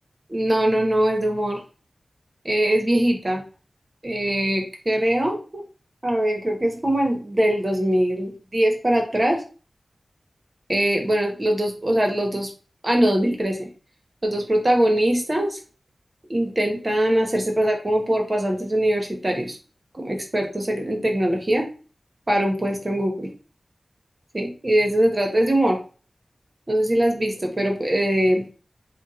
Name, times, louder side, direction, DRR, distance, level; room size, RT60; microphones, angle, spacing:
voice 1, 0.3-1.6 2.4-3.4 4.0-5.6 6.0-9.4 10.7-12.5 12.8-13.7 14.2-15.6 16.3-19.6 19.9-21.7 22.3-23.3 24.3-25.8 26.7-28.4, right 1 dB, 35° right, 2 dB, 1.0 m, -22 dB
3.6 x 2.3 x 4.2 m, 0.38 s
wide cardioid pair, 80°, 0 cm